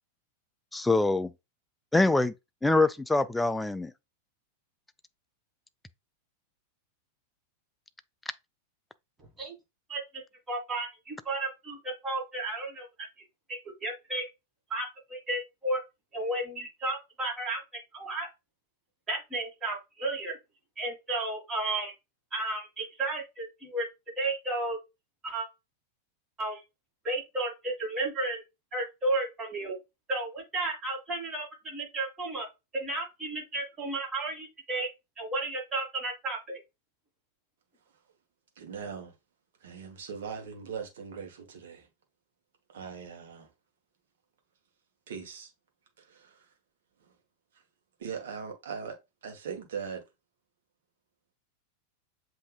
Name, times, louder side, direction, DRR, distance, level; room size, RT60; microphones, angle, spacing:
voice 1, 0.7-1.3 1.9-2.3 2.6-3.9, left 2 dB, 5° left, 0.3 m, -24 dB
voice 2, 9.2-9.5 9.9-10.2 10.5-12.9 13.8-14.3 14.7-15.8 16.1-17.6 17.9-18.3 19.1-20.4 20.8-21.9 22.3-23.9 24.2-24.8 25.2-25.5 26.4-26.6 27.0-28.4 28.7-29.8 30.1-32.5 32.7-34.9 35.2-36.6, right 2 dB, 15° right, 1.9 m, -33 dB
voice 3, 38.6-39.1 39.6-41.9 42.7-43.5 45.1-45.5 46.0-46.5 47.0-47.1 48.0-49.0 49.2-50.0, right 6 dB, 60° right, 1.1 m, -40 dB
7.6 x 2.7 x 2.3 m
figure-of-eight pair, 90°, 0 cm